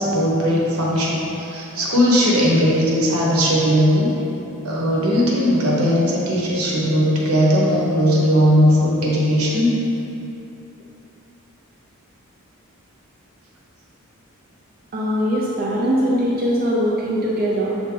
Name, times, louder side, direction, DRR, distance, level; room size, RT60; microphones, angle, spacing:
voice 1, 0.0-4.1 4.6-9.7, equal, 75° right, -4 dB, 1.2 m, -18 dB
voice 2, 14.9-17.8, equal, 40° right, -5 dB, 0.5 m, -21 dB
6.4 x 3.9 x 3.9 m, 2.9 s
head